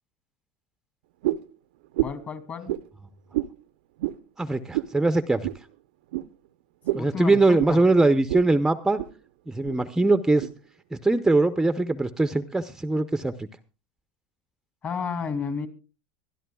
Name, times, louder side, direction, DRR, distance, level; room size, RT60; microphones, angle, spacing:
sound 1, 1.2-1.5 1.9-2.3 2.7-2.8 3.3-3.5 4.0-4.2 4.7-4.9 5.4-5.6 6.1-6.3 6.8-7.1 7.6-7.8 8.3-8.5 8.8-9.1 9.6-9.8 10.4-10.5, right 15 dB, 80° right, 0.7 m, -28 dB
voice 1, 2.0-2.7 6.9-7.8 14.8-15.7, left 6 dB, 30° left, 10 dB, 2.4 m, -32 dB
voice 2, 4.4-5.4 6.9-9.0 9.5-10.5 10.9-13.5, right 2 dB, 5° right, 11 dB, 0.7 m, -22 dB
24.5 x 12.5 x 2.3 m, 0.32 s
supercardioid pair, 120°, 5 cm